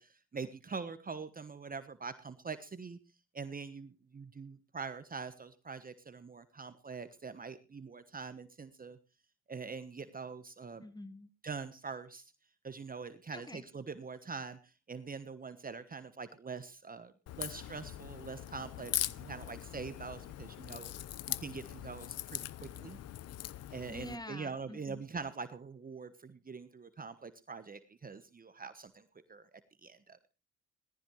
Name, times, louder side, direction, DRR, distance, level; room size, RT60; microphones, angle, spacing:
voice 1, 0.0-3.0 3.3-9.0 9.5-10.8 11.4-12.3 12.6-20.9 21.3-23.0 23.7-30.3, right 5 dB, 30° right, 11 dB, 1.2 m, -44 dB
voice 2, 10.8-11.3 13.3-13.6 23.8-25.0, left 1 dB, 15° left, 12 dB, 1.6 m, -47 dB
Crack, 17.3-24.2, left 13 dB, 55° left, 0.7 m, -41 dB
17.5 x 15.0 x 3.2 m, 0.32 s
hypercardioid pair, 55°, 29 cm